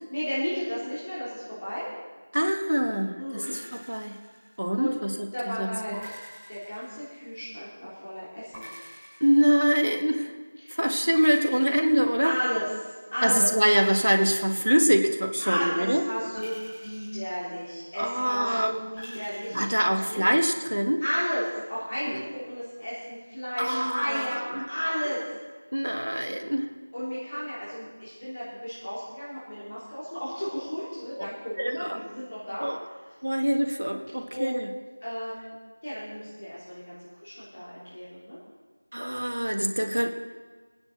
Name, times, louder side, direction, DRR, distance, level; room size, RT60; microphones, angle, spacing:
voice 1, 0.1-1.9 3.2-3.5 4.8-5.0 5.3-6.1 6.5-8.7 10.6-10.8 12.2-13.5 15.4-20.3 21.0-25.2 26.9-33.1 34.3-34.6 35.0-35.5 35.8-38.4, equal, 40° left, -9 dB, 3.4 m, -33 dB
voice 2, 2.3-4.1 4.6-5.1 5.6-5.7 9.2-10.3 10.8-12.3 13.2-16.0 18.0-18.7 19.5-21.0 22.1-22.2 23.6-24.6 25.7-26.7 31.2-31.3 31.6-32.0 32.6-32.8 33.2-34.7 38.9-40.1, equal, 80° right, 5 dB, 1.5 m, -24 dB
sound 1, 3.4-5.0 5.9-7.5 8.5-10.2 11.1-12.7 13.7-15.4 16.3-18.0 19.0-20.4, equal, 5° left, 5.0 m, -46 dB
22.5 x 9.6 x 4.1 m, 1.4 s
figure-of-eight pair, 175°, 0 cm